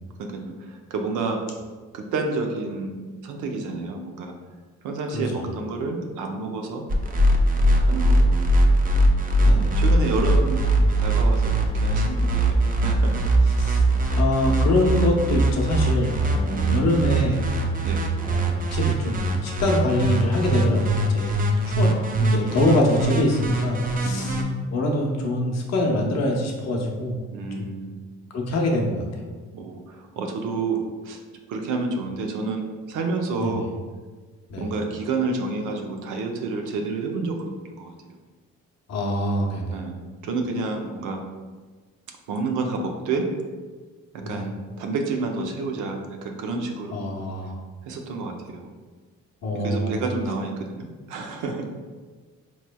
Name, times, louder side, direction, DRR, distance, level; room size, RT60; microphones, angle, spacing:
voice 1, 0.2-1.4 1.9-4.3 4.8-6.9 7.8-8.5 9.4-13.2 14.1-14.2 16.4-16.9 17.8-18.0 24.0-24.6 27.3-27.9 29.5-31.2 31.5-33.7 34.6-38.0 39.7-41.2 42.3-43.3 44.1-44.5 44.8-47.1 47.8-48.7 49.5-51.7, right 3 dB, 90° right, 3 dB, 0.6 m, -29 dB
sound 1, 6.9-24.4, right 1 dB, 30° right, 0.5 m, -21 dB
voice 2, 9.4-9.8 13.6-13.8 14.1-17.4 18.2-21.4 21.6-24.4 24.7-27.1 27.6-27.7 28.3-29.0 33.4-33.6 34.5-34.7 38.9-39.8 44.2-44.4 46.9-47.5 49.4-49.9, left 1 dB, 60° left, -1 dB, 0.8 m, -24 dB
4.2 x 3.1 x 2.2 m, 1.4 s
cardioid pair, 90°, 30 cm